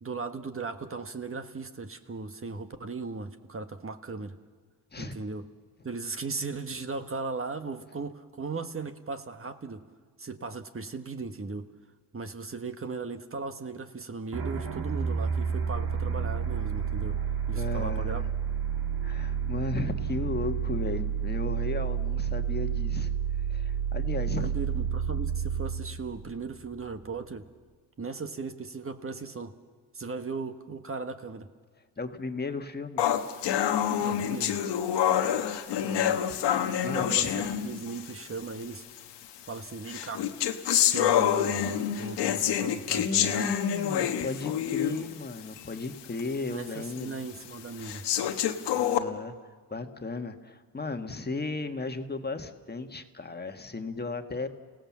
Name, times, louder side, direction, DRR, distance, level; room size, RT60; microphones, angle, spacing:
voice 1, 0.0-4.3 5.0-5.4 5.8-9.8 10.2-11.7 12.1-17.2 17.5-18.2 24.3-27.5 28.0-29.6 29.9-31.5 34.0-34.6 36.8-38.8 39.5-40.2 40.9-43.5 46.5-48.1, right 4 dB, 30° right, 8 dB, 1.5 m, -37 dB
sound 1, 14.3-27.0, right 8 dB, 65° right, 2.6 m, -30 dB
voice 2, 17.5-18.3 19.0-23.1 23.5-24.5 32.0-33.1 35.7-37.3 42.1-42.3 43.0-47.2 48.8-49.3 49.7-54.5, left 3 dB, 25° left, 6 dB, 1.6 m, -35 dB
sound 2, 33.0-38.1 39.0-39.1 39.9-45.1 45.6-45.7 46.2-46.3 47.0-47.1 47.8-49.0, left 10 dB, 90° left, 1.3 m, -27 dB
29.5 x 17.0 x 7.5 m, 1.5 s
cardioid pair, 75°, 40 cm